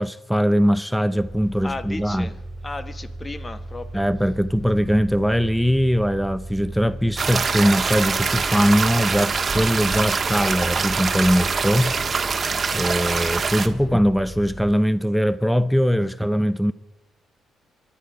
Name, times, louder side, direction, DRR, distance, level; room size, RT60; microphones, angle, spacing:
voice 1, 0.0-2.3 3.9-12.0 12.7-16.7, equal, ahead, 0.6 m, -21 dB
sound 1, 1.1-14.7, right 1 dB, 15° right, 3.1 m, -37 dB
voice 2, 1.6-2.4 2.6-4.0 12.0-12.5, left 3 dB, 25° left, 1.2 m, -35 dB
sound 2, 7.2-13.7, right 5 dB, 35° right, 1.4 m, -24 dB
24.5 x 10.5 x 5.1 m
cardioid pair, 90°, 0 cm